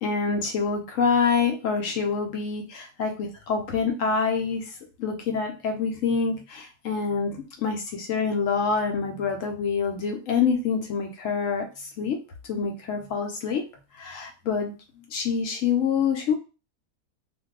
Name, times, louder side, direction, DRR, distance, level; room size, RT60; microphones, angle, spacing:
voice 1, 0.0-12.2 12.5-13.7 13.9-14.7 15.1-16.4, left 5 dB, 70° left, 3 dB, 0.8 m, -26 dB
2.6 x 2.3 x 3.5 m, 0.32 s
omnidirectional pair, 1.7 m